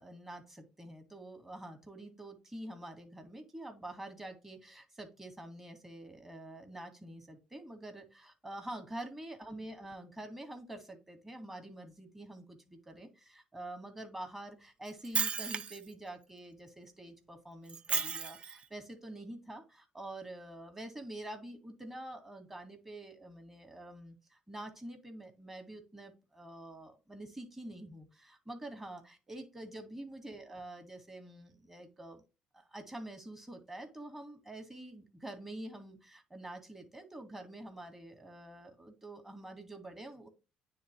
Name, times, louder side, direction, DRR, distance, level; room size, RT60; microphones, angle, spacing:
voice 1, 0.0-32.2 32.5-40.3, right 1 dB, 15° right, 5 dB, 2.1 m, -47 dB
Shatter, 14.9-15.9 17.7-18.6, right 6 dB, 40° right, 0.5 m, -34 dB
9.4 x 3.6 x 3.0 m, 0.29 s
cardioid pair, 105°, 3 cm